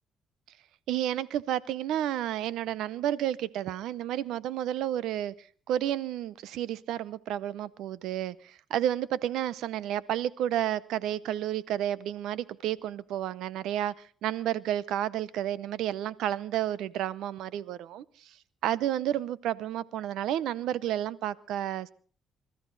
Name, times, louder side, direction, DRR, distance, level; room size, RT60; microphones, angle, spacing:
voice 1, 0.9-5.3 5.7-13.9 14.2-18.0 18.6-21.9, right 12 dB, 85° right, 20 dB, 0.7 m, -31 dB
27.0 x 13.5 x 4.0 m, 0.43 s
cardioid pair, 90°, 0 cm